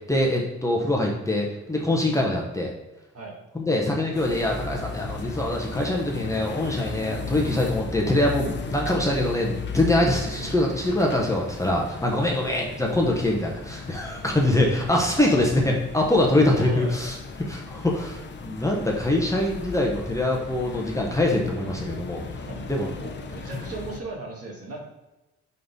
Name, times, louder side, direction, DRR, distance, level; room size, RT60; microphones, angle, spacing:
voice 1, 0.1-2.7 3.5-22.2 22.7-22.9, left 1 dB, 10° left, -1 dB, 1.1 m, -24 dB
sound 1, 4.1-24.0, left 4 dB, 35° left, 0.8 m, -36 dB
voice 2, 15.2-15.5 16.3-16.9 22.4-22.7 23.0-24.8, right 2 dB, 50° right, -2 dB, 2.2 m, -37 dB
5.5 x 3.8 x 5.2 m, 1.0 s
cardioid pair, 90°, 30 cm